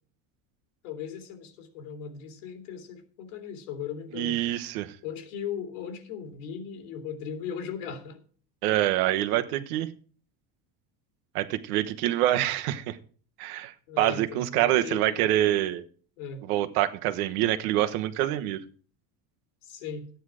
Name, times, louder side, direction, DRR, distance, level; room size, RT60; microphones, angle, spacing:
voice 1, 0.8-4.4 5.0-8.2 13.9-15.3 16.2-16.4 19.6-20.1, left 7 dB, 85° left, 5 dB, 2.9 m, -38 dB
voice 2, 4.1-4.9 8.6-9.9 11.3-13.0 13.4-15.8 16.5-18.6, right 13 dB, 80° right, 10 dB, 1.2 m, -26 dB
14.0 x 9.4 x 4.9 m, 0.44 s
cardioid pair, 175°, 43 cm